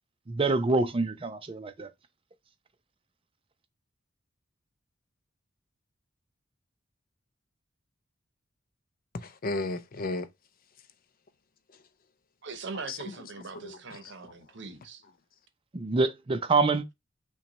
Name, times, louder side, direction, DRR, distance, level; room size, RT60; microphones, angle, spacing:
voice 1, 0.3-1.9 15.7-16.9, right 3 dB, 25° right, 0.5 m, -26 dB
voice 2, 9.1-10.3 12.9-14.3, left 2 dB, 45° left, 0.5 m, -35 dB
voice 3, 12.4-15.0, right 4 dB, 60° right, 0.8 m, -41 dB
5.8 x 2.3 x 4.0 m
head